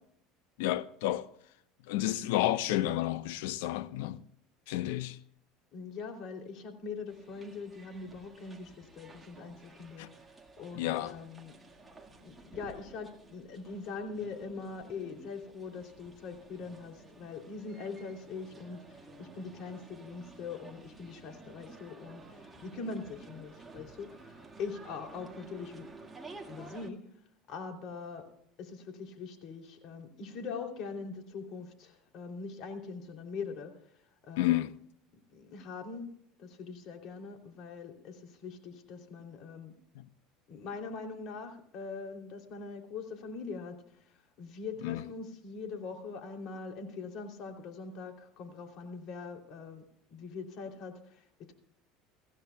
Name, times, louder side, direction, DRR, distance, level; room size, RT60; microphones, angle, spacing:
voice 1, 0.6-1.3 1.9-4.2 4.7-5.2 10.0-10.1 10.7-11.2 34.4-34.8 39.9-40.0 44.8-45.1, left 14 dB, 85° left, 0.8 m, -31 dB
voice 2, 5.7-10.1 10.6-11.6 12.2-27.0 27.5-28.3 28.6-34.6 35.3-36.1 36.4-39.7 40.5-49.8 50.1-51.5, left 4 dB, 50° left, 3.0 m, -42 dB
sound 1, 7.1-26.9, right 3 dB, 10° right, 1.8 m, -53 dB
24.0 x 15.0 x 2.3 m
supercardioid pair, 135°, 0 cm